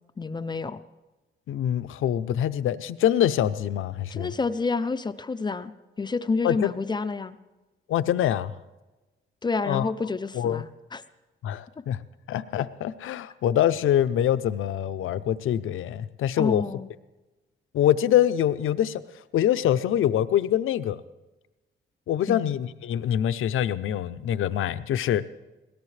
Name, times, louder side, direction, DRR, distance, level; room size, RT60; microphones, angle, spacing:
voice 1, 0.2-0.8 4.1-5.7 6.0-7.4 9.4-11.0 16.4-16.9 22.3-22.5, left 4 dB, 20° left, 12 dB, 0.4 m, -29 dB
voice 2, 1.5-4.3 6.4-6.7 7.9-8.5 9.6-9.9 10.3-10.6 11.4-12.0 12.3-16.6 17.7-19.0 19.3-21.0 22.1-25.2, left 11 dB, 80° left, 13 dB, 0.6 m, -24 dB
21.0 x 17.5 x 3.3 m, 1.1 s
wide cardioid pair, 155°, 21 cm